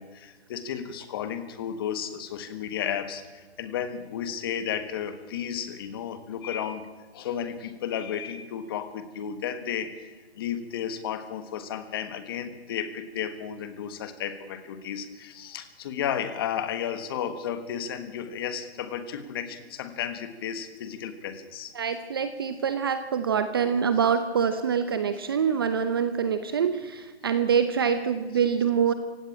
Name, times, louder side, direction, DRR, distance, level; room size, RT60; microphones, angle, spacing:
voice 1, 0.0-6.8 7.1-21.7, left 8 dB, 20° left, 11 dB, 1.5 m, -33 dB
voice 2, 21.7-28.9, right 7 dB, 20° right, 10 dB, 0.8 m, -25 dB
26.5 x 17.0 x 8.7 m, 1.3 s
hypercardioid pair, 165°, 33 cm